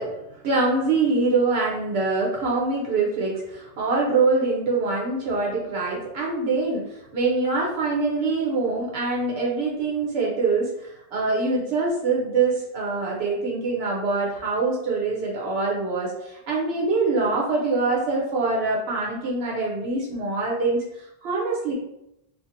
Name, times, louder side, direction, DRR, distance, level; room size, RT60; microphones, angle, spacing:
voice 1, 0.0-21.7, right 3 dB, 85° right, -3 dB, 0.9 m, -24 dB
2.5 x 2.5 x 2.7 m, 0.83 s
omnidirectional pair, 1.0 m